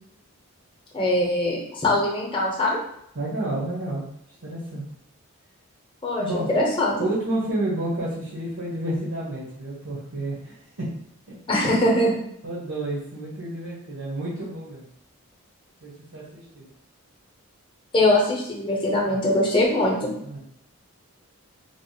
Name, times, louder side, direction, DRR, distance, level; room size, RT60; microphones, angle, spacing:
voice 1, 0.9-2.8 6.0-7.0 11.5-12.2 17.9-20.1, left 1 dB, 20° left, -3 dB, 0.8 m, -22 dB
voice 2, 3.1-4.1 4.4-4.8 6.2-6.5 7.0-10.9 12.4-14.8 15.8-16.7 19.0-19.2 20.2-20.4, right 1 dB, 80° right, -7 dB, 1.2 m, -30 dB
3.4 x 2.0 x 4.1 m, 0.73 s
head